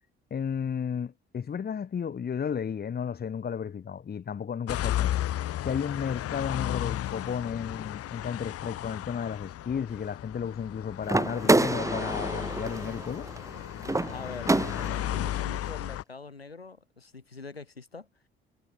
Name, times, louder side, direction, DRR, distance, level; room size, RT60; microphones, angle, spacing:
voice 1, 0.3-5.2 5.6-13.3, left 7 dB, 30° left, 1.7 m, -33 dB
sound 1, 4.7-16.0, left 13 dB, 50° left, 2.9 m, -34 dB
sound 2, 11.0-15.2, right 2 dB, 10° right, 2.0 m, -28 dB
voice 2, 14.0-14.6 15.0-18.1, left 4 dB, 85° left, 6.3 m, -43 dB
figure-of-eight pair, 50°, 30 cm